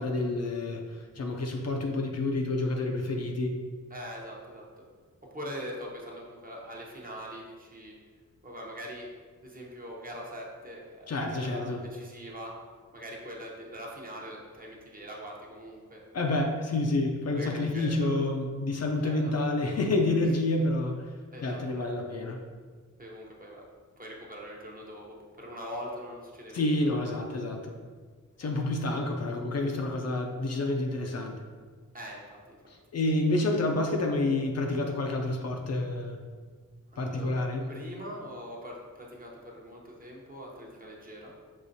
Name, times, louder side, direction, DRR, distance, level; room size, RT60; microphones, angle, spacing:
voice 1, 0.0-3.6 11.1-11.8 16.1-21.0 21.4-22.4 26.5-27.7 28.4-31.4 32.7-36.2 37.0-37.7, left 2 dB, 50° left, 2 dB, 0.5 m, -29 dB
voice 2, 3.9-4.8 5.3-7.9 8.4-9.1 9.4-12.5 12.9-16.0 17.3-18.1 19.0-19.3 21.3-21.9 23.0-23.6 24.0-26.9 31.9-32.6 36.9-37.4 37.7-41.3, equal, 25° right, -2 dB, 0.8 m, -42 dB
6.4 x 3.0 x 2.7 m, 1.5 s
wide cardioid pair, 140°, 33 cm